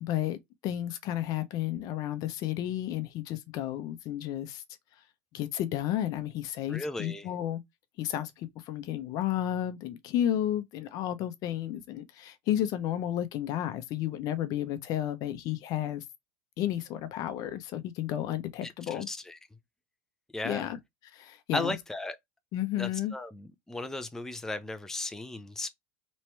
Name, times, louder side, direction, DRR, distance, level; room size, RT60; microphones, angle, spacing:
voice 1, 0.0-4.6 5.3-7.6 8.0-16.0 16.6-19.1 20.4-20.8 21.1-21.8 22.5-23.1, left 12 dB, 50° left, 0.8 m, -32 dB
voice 2, 6.7-7.3 18.6-19.4 20.3-20.7 21.5-22.2 22.8-25.7, left 2 dB, 5° left, 0.5 m, -36 dB
3.1 x 2.9 x 4.5 m
supercardioid pair, 110°, 8 cm